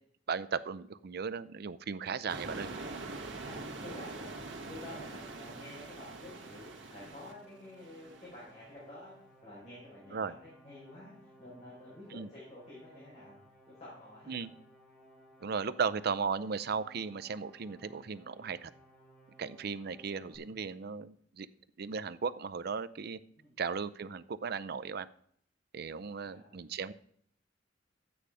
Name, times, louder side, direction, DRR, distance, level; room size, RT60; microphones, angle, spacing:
voice 1, 0.3-2.7 10.1-10.3 12.1-12.3 14.3-14.5 15.4-18.7 19.4-21.5 21.8-23.2 23.6-25.1 25.7-26.9, right 5 dB, 55° right, 15 dB, 0.5 m, -36 dB
sound 1, 2.3-8.5, right 3 dB, 75° right, 1.6 m, -44 dB
voice 2, 3.3-4.4 4.7-9.1 9.4-13.4 13.7-14.5 17.9-18.0 23.4-23.6 26.2-26.7, left 1 dB, 35° left, -7 dB, 5.0 m, -50 dB
sound 2, 4.1-20.4, equal, 5° left, 4.7 m, -60 dB
11.5 x 9.0 x 4.9 m, 0.66 s
head